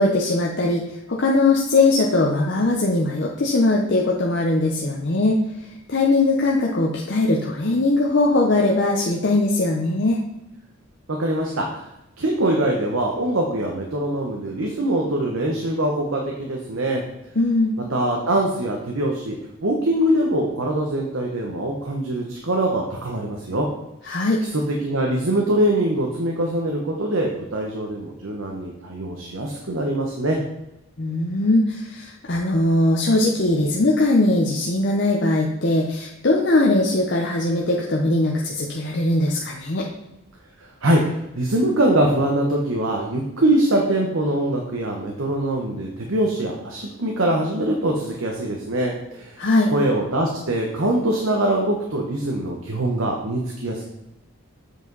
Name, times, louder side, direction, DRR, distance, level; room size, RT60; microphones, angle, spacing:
voice 1, 0.0-5.4 5.9-10.2 17.4-17.8 24.0-24.4 31.0-39.8 49.4-49.7, left 2 dB, 50° left, -2 dB, 0.7 m, -20 dB
voice 2, 11.1-11.9 12.2-17.0 17.9-23.7 24.5-30.4 40.8-49.4 49.7-53.8, right 1 dB, 70° right, 0 dB, 1.0 m, -23 dB
7.9 x 5.0 x 4.0 m, 0.87 s
head